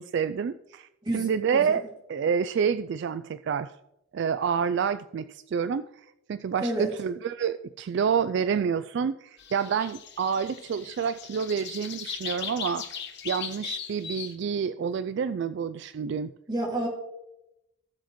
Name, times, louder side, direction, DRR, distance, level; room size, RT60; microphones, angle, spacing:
voice 1, 0.0-0.9 1.1-1.8 2.1-3.7 4.1-5.8 6.3-12.8 13.2-16.3, right 6 dB, 60° right, 13 dB, 0.3 m, -28 dB
voice 2, 1.0-1.8 6.6-6.9 16.5-16.9, right 1 dB, 20° right, -1 dB, 2.4 m, -30 dB
sound 1, 9.4-14.3, left 7 dB, 60° left, 1.1 m, -38 dB
17.5 x 7.1 x 3.1 m, 0.89 s
head